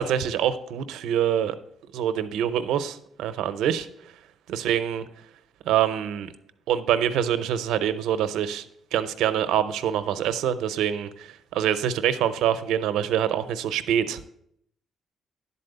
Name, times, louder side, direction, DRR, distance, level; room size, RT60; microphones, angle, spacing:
voice 1, 0.0-1.6 1.9-3.9 4.5-5.0 5.6-6.3 6.7-8.6 8.9-14.2, right 9 dB, 85° right, 12 dB, 0.6 m, -25 dB
11.0 x 4.2 x 6.7 m, 0.71 s
cardioid pair, 90°, 0 cm